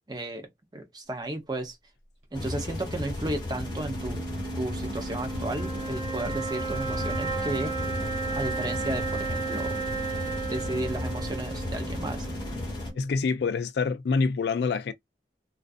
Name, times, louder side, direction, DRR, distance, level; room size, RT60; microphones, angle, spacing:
voice 1, 0.1-0.5 0.7-1.8 2.3-4.3 4.5-7.7 8.3-9.8 10.5-12.3, right 2 dB, 25° right, 0.6 m, -33 dB
sound 1, 2.3-12.9, left 1 dB, 25° left, 0.9 m, -34 dB
sound 2, 3.6-13.1, right 4 dB, 40° right, 1.3 m, -34 dB
voice 2, 13.0-14.9, left 4 dB, 65° left, 0.3 m, -26 dB
2.5 x 2.3 x 2.4 m
head